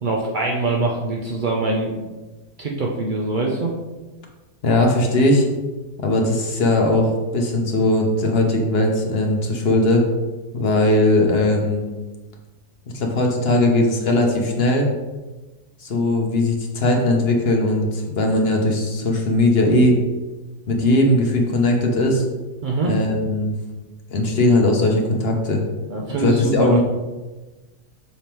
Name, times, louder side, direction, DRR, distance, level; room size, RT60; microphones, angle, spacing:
voice 1, 0.0-2.1 2.6-3.7 22.6-23.0 25.9-26.8, right 3 dB, 70° right, -1 dB, 0.4 m, -23 dB
voice 2, 4.6-5.4 6.0-10.0 10.5-11.8 12.9-14.9 15.8-20.0 20.7-22.2 22.9-23.5 24.1-25.6 26.1-26.8, left 1 dB, 45° left, 1 dB, 0.9 m, -19 dB
6.9 x 3.5 x 4.5 m, 1.2 s
omnidirectional pair, 1.8 m